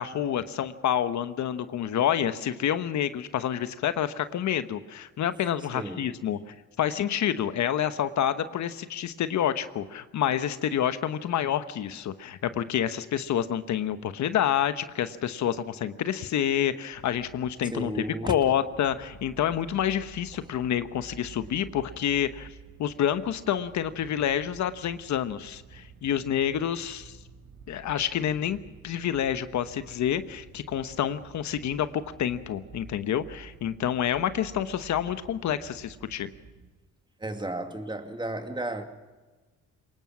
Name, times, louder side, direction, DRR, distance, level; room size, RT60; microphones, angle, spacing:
voice 1, 0.0-22.5 22.8-27.2 27.7-28.6 28.8-36.3, left 10 dB, 70° left, 1.1 m, -28 dB
voice 2, 5.7-6.1 17.7-18.3 37.2-38.8, right 2 dB, 15° right, 2.4 m, -33 dB
sound 1, 16.9-36.7, right 6 dB, 70° right, 5.1 m, -50 dB
23.5 x 20.5 x 6.2 m
cardioid pair, 90°, 30 cm